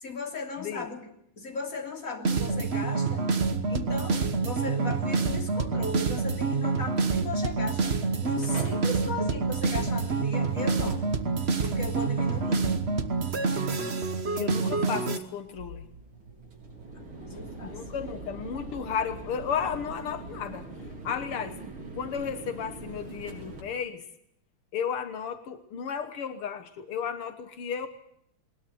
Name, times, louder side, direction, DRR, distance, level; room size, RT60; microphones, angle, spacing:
voice 1, 0.0-3.3 3.7-11.0 11.6-12.7 17.2-17.8, left 3 dB, 40° left, 3 dB, 3.5 m, -37 dB
sound 1, 2.2-15.2, right 4 dB, 35° right, 1.4 m, -27 dB
Mechanical fan, 7.5-23.6, right 2 dB, 70° right, 5.2 m, -44 dB
voice 2, 14.3-15.9 17.6-20.7 21.0-21.6 22.0-24.1 24.7-27.9, left 7 dB, 85° left, 9 dB, 2.2 m, -33 dB
20.5 x 20.5 x 7.8 m, 0.72 s
omnidirectional pair, 2.4 m